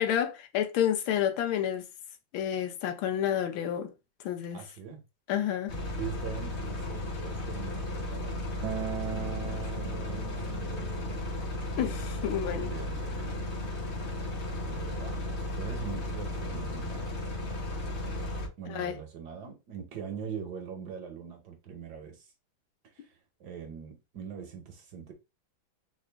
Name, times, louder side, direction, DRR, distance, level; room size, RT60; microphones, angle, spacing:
voice 1, 0.0-1.8 2.3-3.9 4.2-4.6 5.3-5.7 11.8-12.7 18.7-19.0, left 10 dB, 85° left, 1.5 m, -29 dB
voice 2, 4.5-5.0 6.0-8.4 9.1-11.2 12.5-13.4 14.5-17.1 18.6-22.2 23.0-23.1 23.4-25.1, right 7 dB, 60° right, 1.3 m, -42 dB
sound 1, 5.7-18.5, left 1 dB, 35° left, 0.9 m, -35 dB
Acoustic guitar, 8.6-13.8, right 10 dB, 90° right, 1.4 m, -41 dB
4.0 x 2.4 x 3.3 m
omnidirectional pair, 2.2 m